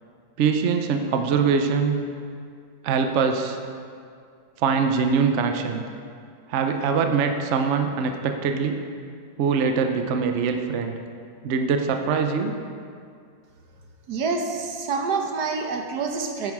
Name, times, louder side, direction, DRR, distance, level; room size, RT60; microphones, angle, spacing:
voice 1, 0.4-2.0 2.8-3.6 4.6-5.8 6.5-8.8 9.4-11.0 11.4-12.5, right 5 dB, 75° right, 6 dB, 0.6 m, -23 dB
voice 2, 14.1-16.5, right 4 dB, 60° right, 3 dB, 1.4 m, -27 dB
9.5 x 9.3 x 4.8 m, 2.2 s
omnidirectional pair, 2.1 m